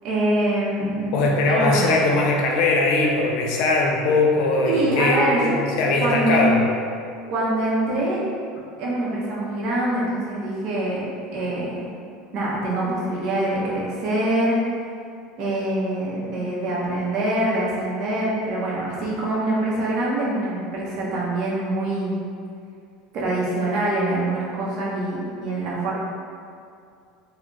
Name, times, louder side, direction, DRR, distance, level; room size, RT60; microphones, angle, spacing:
voice 1, 0.0-1.9 4.7-5.6 6.0-6.5 7.3-8.2 8.8-11.1 11.3-11.9 12.3-14.6 15.4-22.2 23.1-25.9, right 1 dB, 55° right, -5 dB, 0.6 m, -24 dB
voice 2, 1.1-5.5 5.8-6.6, left 2 dB, 65° left, 0 dB, 0.5 m, -20 dB
2.3 x 2.0 x 3.8 m, 2.4 s
supercardioid pair, 125°, 0 cm